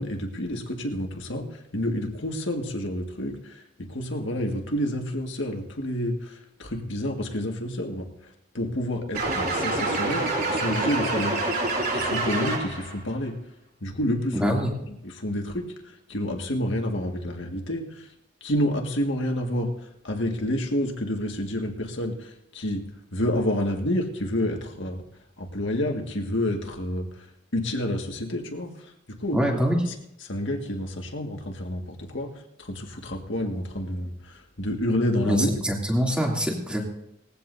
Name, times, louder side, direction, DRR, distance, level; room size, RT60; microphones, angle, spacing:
voice 1, 0.0-1.5 1.7-8.1 8.5-11.4 11.7-13.4 13.8-14.6 15.0-18.1 18.4-19.7 20.0-25.0 25.4-27.3 27.5-28.7 29.2-29.6 30.2-32.3 32.6-35.6, left 1 dB, 60° left, 2 dB, 1.9 m, -29 dB
sound 1, 9.1-12.9, right 2 dB, 45° right, 3.6 m, -26 dB
voice 2, 14.3-14.7 29.3-29.8 35.2-36.8, equal, 5° right, -2 dB, 2.7 m, -24 dB
20.5 x 15.5 x 2.7 m, 0.80 s
head